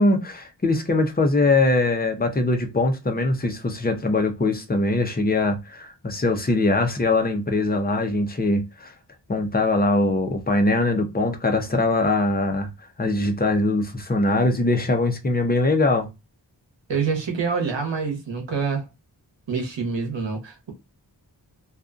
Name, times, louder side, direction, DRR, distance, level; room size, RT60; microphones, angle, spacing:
voice 1, 0.0-8.9 9.3-12.7 13.0-16.1, left 2 dB, 20° left, 0.6 m, -22 dB
voice 2, 16.9-18.9 19.5-20.7, right 5 dB, 85° right, 0.9 m, -26 dB
2.5 x 2.3 x 2.4 m
wide cardioid pair, 65°, 44 cm